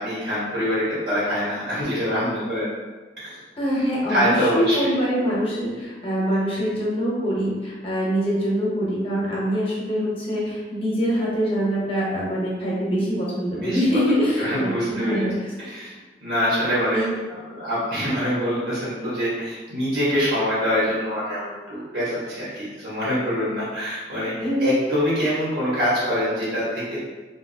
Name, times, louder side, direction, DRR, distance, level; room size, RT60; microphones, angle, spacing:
voice 1, 0.0-2.7 3.2-3.4 4.1-4.9 6.5-6.7 13.6-13.8 14.4-15.3 15.6-15.9 16.2-27.0, equal, 85° right, -9 dB, 1.4 m, -25 dB
voice 2, 3.6-15.5 16.9-17.1 24.4-24.7, equal, 30° left, -6 dB, 0.9 m, -24 dB
3.0 x 2.7 x 2.7 m, 1.3 s
head